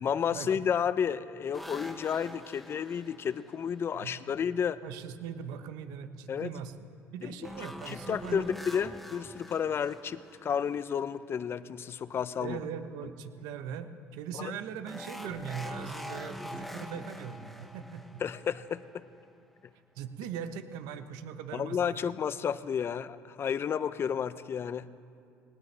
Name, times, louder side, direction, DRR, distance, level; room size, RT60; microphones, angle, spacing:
voice 1, 0.0-4.8 6.3-6.5 7.2-7.3 7.6-12.6 14.3-14.5 18.2-19.0 21.5-24.9, left 7 dB, 40° left, 15 dB, 0.6 m, -32 dB
sound 1, 1.5-4.1 7.4-11.2 14.9-19.2, left 1 dB, ahead, 0.9 m, -45 dB
voice 2, 4.8-6.7 7.1-8.5 12.4-18.2 20.0-22.1, right 7 dB, 80° right, 10 dB, 1.0 m, -40 dB
19.5 x 18.5 x 3.3 m, 2.5 s
supercardioid pair, 90°, 6 cm